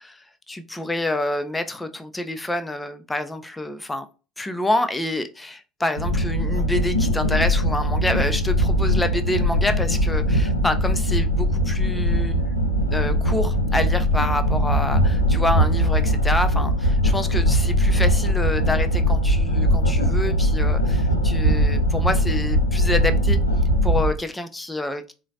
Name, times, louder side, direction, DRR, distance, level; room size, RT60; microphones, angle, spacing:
voice 1, 0.0-4.0 4.4-12.4 12.9-23.4 23.8-25.1, left 1 dB, 10° left, 0.4 m, -27 dB
sound 1, 6.0-24.1, equal, 85° left, 0.3 m, -20 dB
3.7 x 2.0 x 2.6 m
figure-of-eight pair, 65°, 0 cm